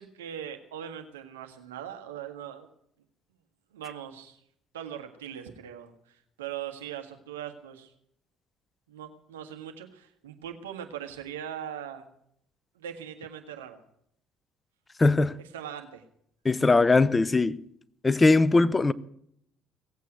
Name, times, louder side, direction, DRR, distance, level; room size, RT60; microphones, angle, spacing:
voice 1, 0.0-2.7 3.7-4.4 4.7-7.9 8.9-12.1 12.7-13.8 15.5-16.0, right 9 dB, 85° right, 1.7 m, -40 dB
voice 2, 15.0-15.4 16.4-17.6 18.0-18.9, left 3 dB, 20° left, 0.8 m, -20 dB
18.0 x 8.3 x 9.2 m
hypercardioid pair, 60°, 0 cm